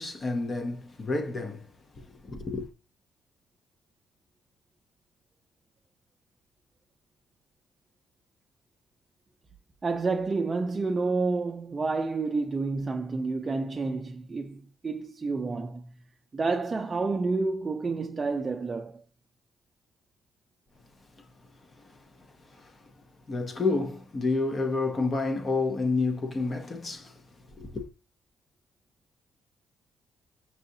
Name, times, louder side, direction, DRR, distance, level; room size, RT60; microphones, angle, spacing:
voice 1, 0.0-1.7 2.0-2.7 21.9-22.0 22.5-22.7 23.3-27.1 27.6-27.9, left 3 dB, 35° left, 0.8 m, -29 dB
voice 2, 9.8-15.9 16.3-19.0, right 3 dB, 30° right, 0.4 m, -29 dB
5.5 x 2.4 x 2.7 m
cardioid pair, 90°, 0 cm